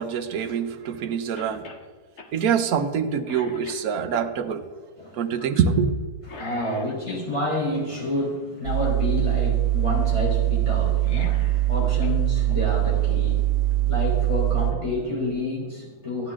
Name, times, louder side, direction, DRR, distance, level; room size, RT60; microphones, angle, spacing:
voice 1, 0.0-1.7 2.3-4.6 5.2-5.9, right 7 dB, 65° right, 8 dB, 1.3 m, -25 dB
Cough, 1.4-1.9 2.2-2.3 2.8-3.0 3.3-4.2 6.2-7.6 10.9-12.2 12.5-12.6 13.7-13.8, left 3 dB, 45° left, 1.3 m, -42 dB
voice 2, 5.0-5.3 6.3-16.3, left 2 dB, 20° left, -4 dB, 3.9 m, -29 dB
sound 1, 8.6-14.7, right 15 dB, 90° right, 1.4 m, -22 dB
15.0 x 9.4 x 3.7 m, 1.5 s
omnidirectional pair, 1.8 m